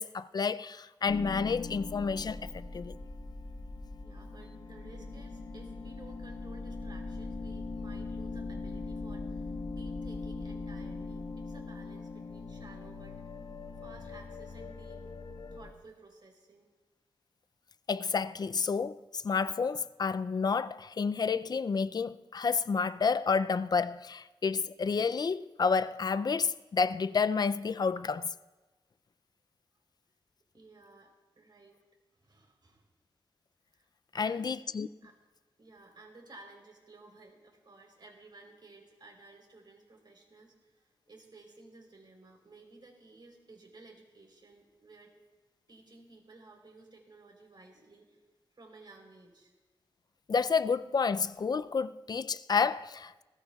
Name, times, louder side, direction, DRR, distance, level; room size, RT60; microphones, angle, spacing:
voice 1, 0.0-3.0 17.9-28.3 34.1-34.9 50.3-53.2, left 5 dB, 45° left, 0.4 m, -30 dB
sound 1, 1.1-15.7, left 3 dB, 65° left, 1.0 m, -41 dB
voice 2, 4.0-13.2 13.8-15.1 15.5-16.7 30.5-31.8 32.1-32.9 33.7-33.9 34.2-34.6 35.0-35.2 35.6-45.1 45.7-48.2 48.5-49.5, right 3 dB, 55° right, 3.6 m, -55 dB
20.0 x 17.0 x 2.3 m
wide cardioid pair, 90°, 9 cm